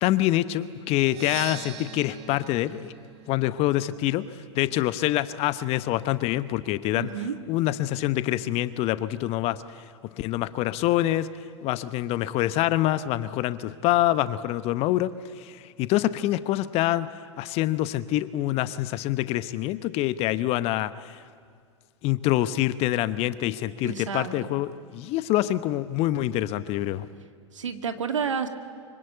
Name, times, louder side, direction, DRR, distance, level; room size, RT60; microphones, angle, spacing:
voice 1, 0.0-2.9 3.3-4.2 4.6-7.1 7.5-9.6 10.2-11.3 11.6-15.1 15.4-17.1 17.4-21.2 22.0-27.1, left 15 dB, 40° left, 14 dB, 0.9 m, -25 dB
Percussion, 1.0-4.8, right 11 dB, 55° right, 1.7 m, -43 dB
voice 2, 7.0-7.4 23.8-24.5 27.5-28.5, right 6 dB, 80° right, 7 dB, 2.0 m, -30 dB
25.0 x 24.5 x 8.1 m, 2.1 s
figure-of-eight pair, 95°, 16 cm